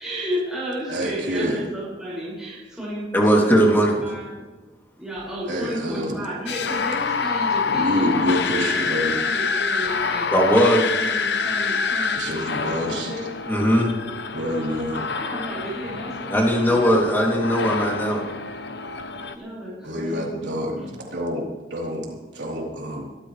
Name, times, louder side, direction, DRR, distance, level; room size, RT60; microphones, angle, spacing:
voice 1, 0.0-4.4 5.0-13.3 14.4-17.5 19.3-20.9, equal, 5° right, -9 dB, 6.1 m, -33 dB
voice 2, 0.9-1.6 5.5-6.1 7.7-9.2 12.2-13.1 14.3-15.0 19.8-23.0, equal, 75° right, -2 dB, 3.7 m, -27 dB
voice 3, 3.1-4.0 10.3-10.9 13.5-13.9 16.3-18.2, equal, 10° left, -2 dB, 2.8 m, -18 dB
sound 1, 6.5-19.3, left 5 dB, 65° left, 0.9 m, -26 dB
23.5 x 13.0 x 3.3 m, 1.2 s
head